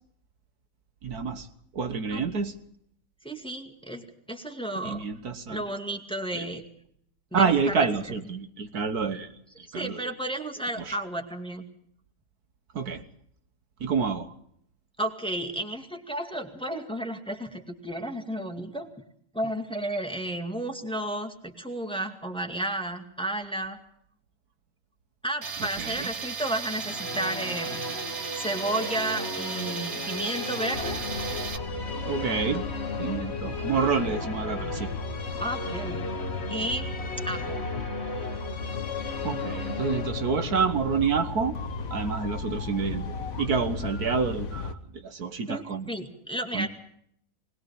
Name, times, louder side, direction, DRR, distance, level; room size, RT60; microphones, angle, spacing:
voice 1, 1.0-1.5 1.7-2.6 4.8-5.6 6.3-6.4 7.3-9.3 9.6-10.0 10.8-10.9 12.7-13.0 13.8-14.3 25.8-26.1 32.0-32.7 33.0-34.9 39.2-41.6 41.9-43.1 43.4-45.9 46.5-46.7, right 5 dB, 65° right, 9 dB, 1.8 m, -28 dB
voice 2, 3.2-5.1 5.5-6.6 7.3-7.9 9.7-11.6 15.0-18.9 19.3-23.8 25.2-27.8 28.3-31.0 35.4-36.0 36.5-36.9 37.2-37.6 45.5-46.7, right 1 dB, 5° left, 5 dB, 2.1 m, -32 dB
Tools, 25.4-31.6, right 5 dB, 45° right, 1.7 m, -36 dB
sound 1, 26.5-42.6, left 3 dB, 40° left, 1.8 m, -36 dB
sound 2, 30.7-44.7, left 3 dB, 60° left, 1.8 m, -36 dB
21.0 x 20.5 x 7.1 m, 0.68 s
omnidirectional pair, 1.7 m